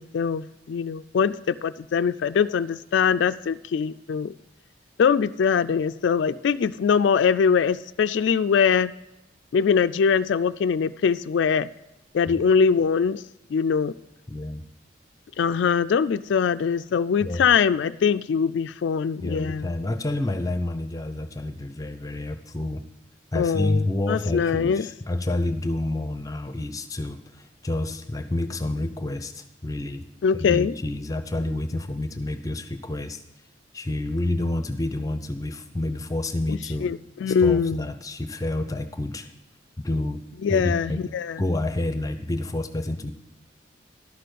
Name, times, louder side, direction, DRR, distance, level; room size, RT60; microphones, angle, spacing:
voice 1, 0.0-4.3 5.0-8.9 9.5-11.7 12.1-13.2 13.5-13.9 15.4-19.7 23.3-24.9 30.2-30.7 36.5-37.9 40.4-41.4, left 6 dB, 70° left, 13 dB, 0.3 m, -22 dB
voice 2, 14.3-14.6 17.2-17.4 19.2-22.8 23.3-30.0 30.3-33.2 33.7-36.9 37.3-39.3 39.8-40.2 40.5-41.0 41.4-43.1, left 2 dB, 20° left, 9 dB, 0.7 m, -29 dB
12.0 x 6.8 x 8.0 m, 0.93 s
head